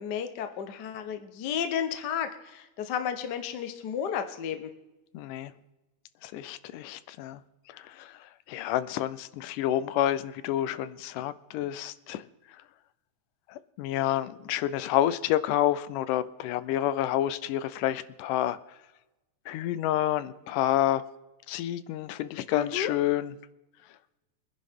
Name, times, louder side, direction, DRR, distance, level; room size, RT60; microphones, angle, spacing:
voice 1, 0.0-4.7 22.5-22.9, left 8 dB, 70° left, 7 dB, 1.0 m, -32 dB
voice 2, 5.1-5.5 6.2-7.4 7.7-12.2 13.5-18.6 19.5-21.0 21.5-23.3, left 12 dB, 90° left, 15 dB, 2.2 m, -29 dB
23.5 x 10.0 x 3.7 m, 1.0 s
omnidirectional pair, 3.6 m